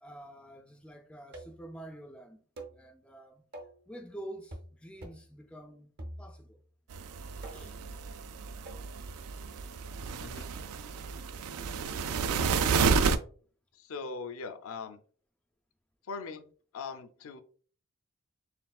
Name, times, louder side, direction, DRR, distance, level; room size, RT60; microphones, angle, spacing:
voice 1, 0.0-2.4 2.7-3.4 3.9-5.9 6.2-6.6 7.2-7.8, right 1 dB, 5° left, 0.3 m, -48 dB
sound 1, 1.3-1.7 2.6-2.8 3.5-3.8 4.5-4.7 5.0-5.3 6.0-6.6 7.4-7.8 8.6-8.9, right 1 dB, 50° right, 0.7 m, -46 dB
sound 2, 6.9-13.2, right 5 dB, 70° right, 0.3 m, -31 dB
voice 2, 13.8-15.0 16.1-16.4 16.7-17.4, left 4 dB, 65° left, 0.5 m, -40 dB
4.4 x 3.6 x 2.3 m
head